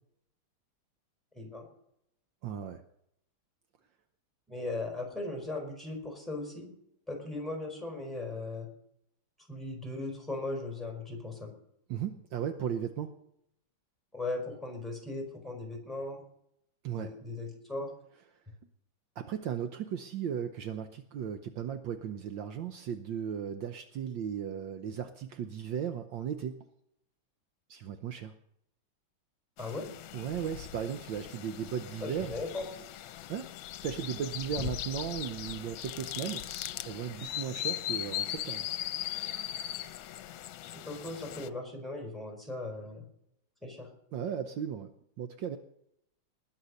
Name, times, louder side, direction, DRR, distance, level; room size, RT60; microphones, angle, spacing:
voice 1, 2.4-2.8 11.9-13.2 16.8-17.1 18.3-18.4 19.2-26.6 27.7-28.4 30.1-32.3 33.3-33.5 33.8-38.6 44.1-44.9 45.2-45.6, right 8 dB, 70° right, 8 dB, 1.5 m, -36 dB
voice 2, 4.5-6.6 7.1-8.7 9.5-11.5 14.1-16.2 16.9-17.9 29.6-29.8 32.0-32.6 40.7-43.0 43.6-43.9, left 2 dB, ahead, 1 dB, 4.8 m, -38 dB
sound 1, 29.6-41.5, left 12 dB, 80° left, 1.5 m, -39 dB
20.0 x 7.2 x 6.5 m, 0.75 s
omnidirectional pair, 2.2 m